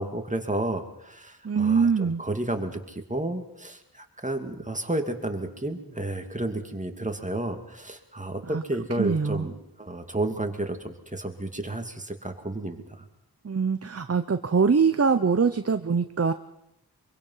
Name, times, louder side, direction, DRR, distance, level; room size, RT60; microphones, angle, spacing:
voice 1, 0.0-13.0, right 1 dB, 20° right, 5 dB, 2.5 m, -32 dB
voice 2, 1.4-2.2 8.5-8.6 9.0-9.5 13.4-16.3, right 5 dB, 40° right, 10 dB, 0.9 m, -23 dB
25.0 x 23.5 x 5.7 m, 0.81 s
wide cardioid pair, 80°, 38 cm